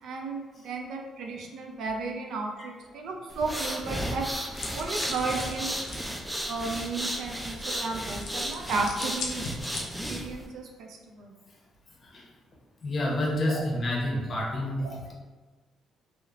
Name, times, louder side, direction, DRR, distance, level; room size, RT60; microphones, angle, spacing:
voice 1, 0.0-4.3 4.7-5.8 6.5-9.5 9.8-11.3 13.5-13.6 14.8-14.9, right 3 dB, 75° right, 1 dB, 0.4 m, -34 dB
sound 1, 3.3-10.5, equal, 5° right, 0.3 m, -34 dB
sound 2, 4.5-6.1 8.1-10.3, left 3 dB, 75° left, 0.4 m, -39 dB
voice 2, 12.8-15.1, left 1 dB, 45° left, -3 dB, 0.7 m, -29 dB
3.0 x 2.0 x 2.4 m, 1.3 s
cardioid pair, 90°, 0 cm